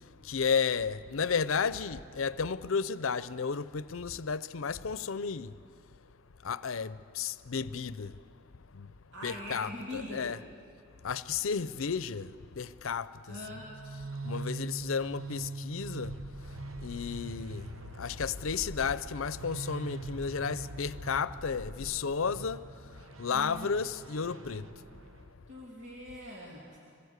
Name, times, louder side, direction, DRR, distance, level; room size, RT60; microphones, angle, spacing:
voice 1, 0.2-5.5 6.4-8.2 8.7-8.9 9.2-10.4 11.0-13.5 14.2-16.1 16.8-17.7 18.0-22.7 23.2-24.7, left 6 dB, 80° left, 0.6 m, -33 dB
voice 2, 9.1-10.4 13.3-13.7 23.3-23.7 25.5-26.8, left 1 dB, 60° right, 3.2 m, -42 dB
sound 1, 13.5-25.3, right 2 dB, 75° right, 1.1 m, -42 dB
26.0 x 20.0 x 8.1 m
head